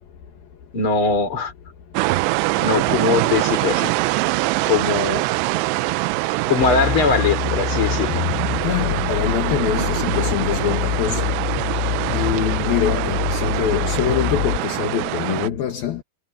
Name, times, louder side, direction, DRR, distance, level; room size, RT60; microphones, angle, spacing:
voice 1, 0.7-1.5 2.6-3.9 4.6-5.3 6.5-8.2, left 4 dB, 30° left, 3.9 m, -21 dB
sound 1, 2.0-15.5, right 21 dB, 85° right, 2.7 m, -24 dB
sound 2, 6.6-14.6, left 15 dB, 85° left, 2.7 m, -26 dB
voice 2, 8.6-11.3 12.1-16.0, left 10 dB, 65° left, 3.3 m, -24 dB
omnidirectional pair, 4.8 m